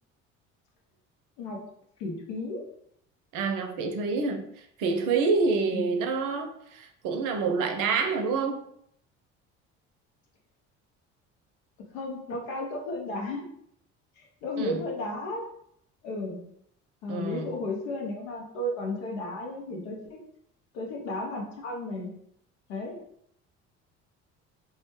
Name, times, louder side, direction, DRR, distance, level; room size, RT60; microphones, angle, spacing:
voice 1, 2.0-2.6 5.7-5.9 11.9-13.5 14.2-15.5 16.0-16.4 17.0-20.2 20.7-22.1 22.7-23.0, left 2 dB, 80° left, 0.7 m, -34 dB
voice 2, 3.3-8.6 14.6-14.8 17.1-17.6, right 4 dB, 65° right, 0.5 m, -27 dB
2.2 x 2.1 x 3.0 m
hypercardioid pair, 60°, 36 cm